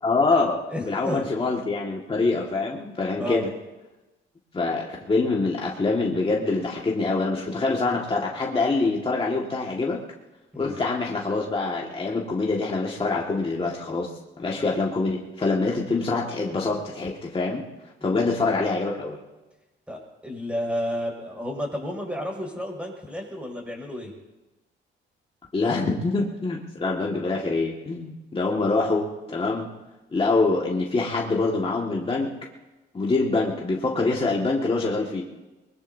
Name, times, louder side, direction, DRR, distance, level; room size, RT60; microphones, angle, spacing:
voice 1, 0.0-3.5 4.5-10.0 10.6-14.1 14.4-17.6 18.0-19.2 25.5-29.7 30.1-32.3 32.9-35.2, left 3 dB, 25° left, -2 dB, 1.9 m, -25 dB
voice 2, 0.7-1.3 3.2-3.5 10.5-10.8 18.0-18.3 19.9-24.1, equal, 5° right, 0 dB, 6.1 m, -32 dB
23.0 x 21.0 x 2.8 m, 1.1 s
cardioid pair, 90°, 20 cm